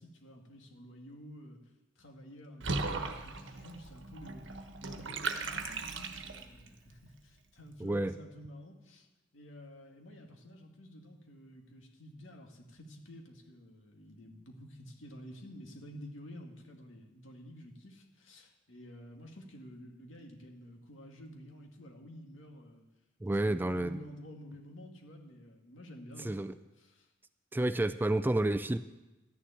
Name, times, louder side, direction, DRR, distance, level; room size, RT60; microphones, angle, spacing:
voice 1, 0.0-1.6 2.0-9.1 9.3-22.8 23.3-26.4 26.8-27.1, equal, 80° left, 2 dB, 2.3 m, -51 dB
Water / Bathtub (filling or washing), 2.6-6.7, right 3 dB, 70° right, 1.2 m, -37 dB
voice 2, 7.8-8.1 23.2-24.0 26.2-26.5 27.5-28.8, right 1 dB, 10° right, 11 dB, 0.3 m, -30 dB
13.0 x 7.2 x 9.2 m, 1.1 s
head